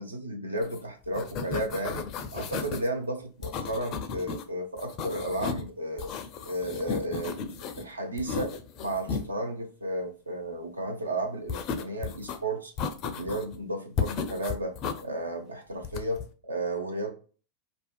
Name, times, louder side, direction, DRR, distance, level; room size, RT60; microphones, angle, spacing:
voice 1, 0.0-6.1 6.5-8.5 8.8-12.7 13.0-17.1, right 1 dB, 80° right, 4 dB, 0.5 m, -33 dB
sound 1, 0.6-0.8 1.0-2.9 3.4-4.4 4.8-5.7 6.0-7.8 8.2-9.3 11.5-12.4 12.8-13.6 14.0-15.0 15.8-16.3, left 5 dB, 35° left, 0.4 m, -34 dB
2.5 x 2.3 x 2.2 m, 0.38 s
figure-of-eight pair, 90°, 0 cm